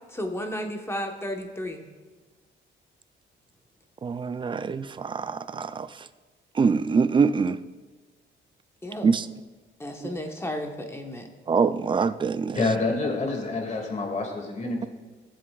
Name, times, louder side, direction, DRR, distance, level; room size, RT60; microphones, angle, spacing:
voice 1, 0.1-1.8 8.8-9.1 9.8-11.3, left 1 dB, 15° left, 3 dB, 1.1 m, -33 dB
voice 2, 4.0-5.9 6.6-7.6 9.0-9.2 11.5-12.6, right 5 dB, 25° right, 13 dB, 0.4 m, -24 dB
voice 3, 12.5-14.9, left 3 dB, 35° left, 2 dB, 2.2 m, -27 dB
15.0 x 7.6 x 2.4 m, 1.3 s
cardioid pair, 90°, 20 cm